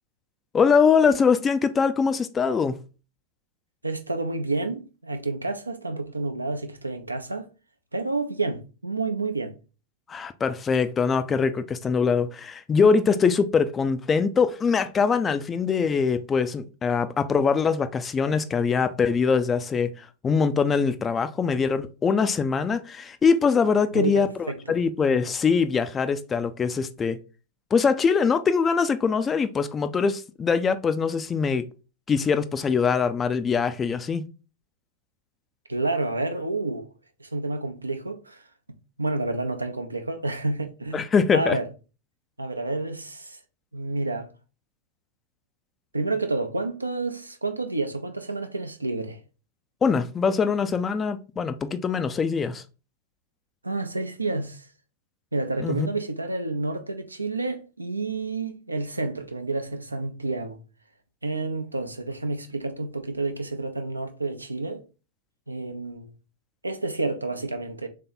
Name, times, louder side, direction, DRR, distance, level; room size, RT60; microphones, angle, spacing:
voice 1, 0.5-2.8 10.1-27.2 27.7-31.7 32.1-34.3 40.9-41.6 49.8-52.6 55.6-55.9, left 5 dB, 20° left, 0.3 m, -23 dB
voice 2, 3.8-7.5 7.9-9.5 23.9-24.8 35.7-36.8 37.2-38.4 39.0-41.7 42.4-43.4 43.7-44.3 45.9-49.2 53.6-54.7 55.3-60.6 61.2-64.8 65.5-66.1 66.6-67.9, right 3 dB, 85° right, 0.5 m, -29 dB
3.3 x 2.8 x 3.8 m
figure-of-eight pair, 95°, 0 cm